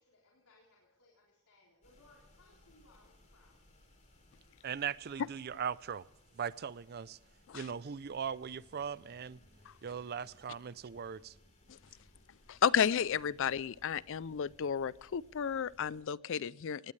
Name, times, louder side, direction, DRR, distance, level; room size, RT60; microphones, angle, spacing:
voice 1, 0.0-3.6, left 2 dB, 85° left, 3.9 m, -65 dB
sound 1, 1.8-16.0, left 1 dB, 35° left, 4.1 m, -64 dB
voice 2, 4.6-6.0 6.4-7.2 7.5-9.4 9.8-11.3, right 7 dB, 45° right, 0.4 m, -39 dB
voice 3, 12.5-16.9, left 8 dB, 60° left, 0.4 m, -32 dB
18.0 x 18.0 x 3.3 m
head